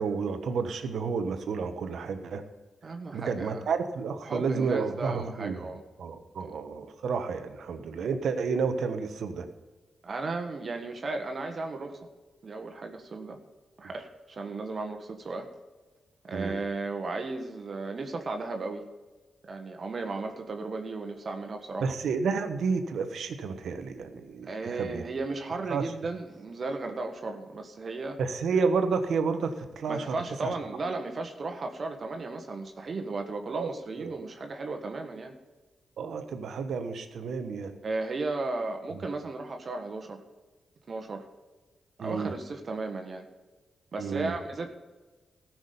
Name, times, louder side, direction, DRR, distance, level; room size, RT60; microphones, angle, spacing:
voice 1, 0.0-2.4 3.1-5.6 6.0-9.5 16.3-16.5 21.8-25.0 25.7-25.9 28.2-30.1 30.4-30.5 33.5-33.7 34.0-34.3 36.0-37.8 42.0-42.3 44.0-44.3, right 5 dB, 75° right, 9 dB, 1.1 m, -30 dB
voice 2, 2.8-3.7 4.2-5.8 6.4-6.5 10.0-12.0 12.4-13.4 13.8-15.5 16.2-18.8 19.5-21.9 24.4-28.2 29.9-35.3 37.8-40.2 40.9-41.3 42.0-43.2 43.9-44.7, right 3 dB, 55° right, 4 dB, 1.5 m, -35 dB
14.5 x 6.1 x 7.0 m, 1.2 s
supercardioid pair, 45°, 0 cm